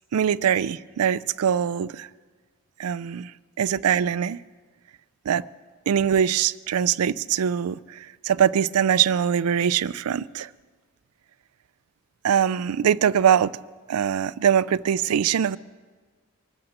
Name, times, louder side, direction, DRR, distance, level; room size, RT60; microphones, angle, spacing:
voice 1, 0.1-2.1 2.8-3.3 3.6-4.4 5.3-5.4 5.9-7.8 8.2-10.5 12.2-13.5 13.9-15.6, right 8 dB, 85° right, 18 dB, 0.4 m, -22 dB
24.0 x 8.7 x 6.6 m, 1.4 s
head